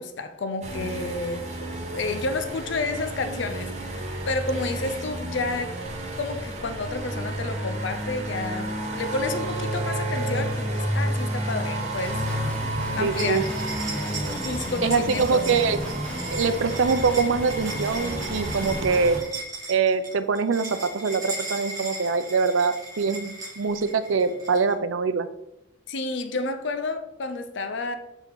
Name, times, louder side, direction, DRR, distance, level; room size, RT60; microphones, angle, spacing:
voice 1, 0.0-1.5 1.9-5.7 6.2-12.2 13.0-13.5 14.4-15.4 25.9-28.0, left 3 dB, 65° left, 9 dB, 0.5 m, -30 dB
sound 1, 0.6-19.2, right 1 dB, 35° right, 1.1 m, -31 dB
Guitar, 12.0-19.2, equal, 5° left, 0.4 m, -36 dB
voice 2, 13.0-13.4 14.8-15.8 16.3-19.2 19.7-25.3, right 5 dB, 85° right, 11 dB, 0.5 m, -24 dB
sound 2, 13.1-24.7, right 2 dB, 20° right, 1.3 m, -37 dB
6.8 x 4.6 x 3.9 m, 0.89 s
head